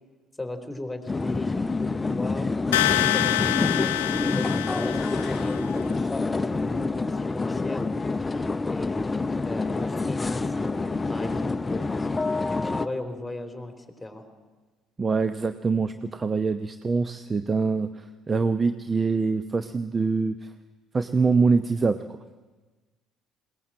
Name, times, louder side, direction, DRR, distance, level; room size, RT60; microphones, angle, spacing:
voice 1, 0.4-2.5 3.0-7.8 8.7-11.8 12.4-14.2, left 2 dB, 5° left, 6 dB, 3.6 m, -37 dB
sound 1, 1.1-12.9, left 3 dB, 20° left, 0.7 m, -27 dB
sound 2, 2.7-5.6, left 15 dB, 80° left, 0.6 m, -26 dB
voice 2, 15.0-20.5 20.9-22.0, right 4 dB, 30° right, 11 dB, 0.8 m, -24 dB
21.0 x 18.5 x 7.5 m, 1.3 s
hypercardioid pair, 55°, 0 cm